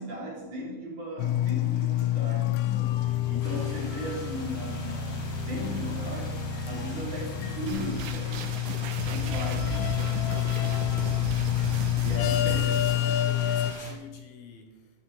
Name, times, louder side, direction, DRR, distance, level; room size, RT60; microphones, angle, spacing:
voice 1, 0.0-6.4 6.7-10.0 12.0-12.7, equal, 45° right, -5 dB, 5.2 m, -37 dB
sound 1, 1.2-13.7, left 12 dB, 90° left, 2.9 m, -28 dB
sound 2, 3.4-13.9, equal, 10° left, 1.6 m, -45 dB
sound 3, 7.7-13.0, right 4 dB, 80° right, 3.0 m, -35 dB
voice 2, 12.0-14.7, left 5 dB, 70° left, 5 dB, 2.7 m, -47 dB
13.0 x 11.5 x 3.8 m, 1.2 s
omnidirectional pair, 4.7 m